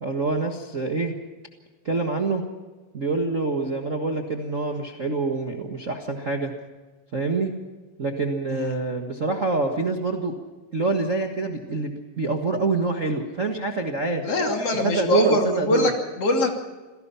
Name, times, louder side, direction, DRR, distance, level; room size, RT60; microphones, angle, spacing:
voice 1, 0.0-1.1 1.8-2.4 2.9-6.5 7.1-7.5 8.0-10.3 10.7-14.3 14.8-15.9, right 3 dB, 35° right, 2 dB, 1.3 m, -26 dB
voice 2, 14.2-16.5, left 1 dB, 50° left, 3 dB, 3.5 m, -23 dB
27.0 x 18.0 x 5.7 m, 1.3 s
omnidirectional pair, 3.4 m